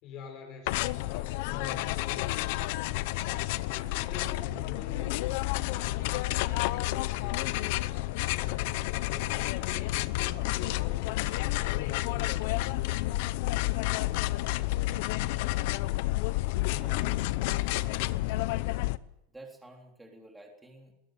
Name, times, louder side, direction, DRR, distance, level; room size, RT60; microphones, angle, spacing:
voice 1, 0.0-3.2 3.7-7.9 8.3-13.2, left 5 dB, 40° left, 5 dB, 4.8 m, -46 dB
sound 1, 0.7-19.0, left 18 dB, 55° left, 0.8 m, -30 dB
voice 2, 16.6-17.4 19.3-20.9, right 2 dB, 5° right, 1 dB, 3.7 m, -50 dB
21.0 x 18.5 x 9.3 m, 0.85 s
supercardioid pair, 165°, 0 cm